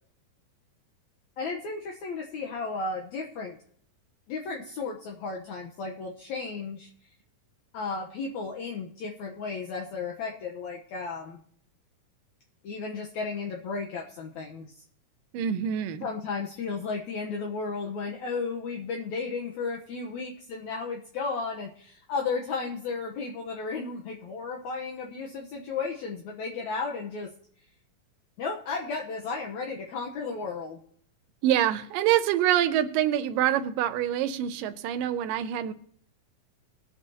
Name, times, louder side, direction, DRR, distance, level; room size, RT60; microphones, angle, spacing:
voice 1, 1.4-3.6 4.3-6.9 7.7-11.4 12.6-14.8 16.0-27.3 28.4-30.8, left 4 dB, 70° left, 0 dB, 2.1 m, -34 dB
voice 2, 15.3-16.1 31.4-35.7, right 11 dB, 85° right, 10 dB, 2.4 m, -25 dB
20.5 x 8.3 x 2.8 m, 0.63 s
omnidirectional pair, 3.8 m